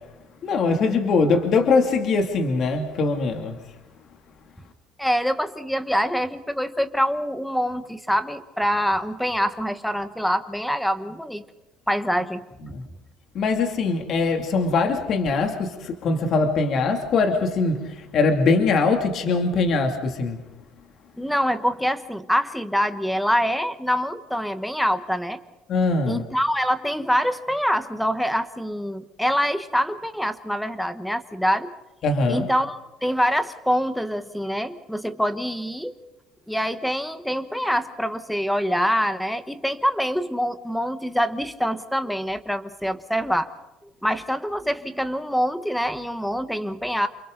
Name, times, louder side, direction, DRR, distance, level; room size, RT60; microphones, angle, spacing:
voice 1, 0.4-3.6 12.7-12.8 13.3-20.4 25.7-26.2 32.0-32.5, left 4 dB, 40° left, 4 dB, 2.7 m, -22 dB
voice 2, 5.0-11.4 11.9-12.4 21.2-25.4 26.1-31.7 32.3-35.9 36.5-43.5 44.0-47.1, equal, ahead, 11 dB, 1.2 m, -25 dB
29.5 x 28.5 x 4.0 m, 1.0 s
cardioid pair, 165°, 0 cm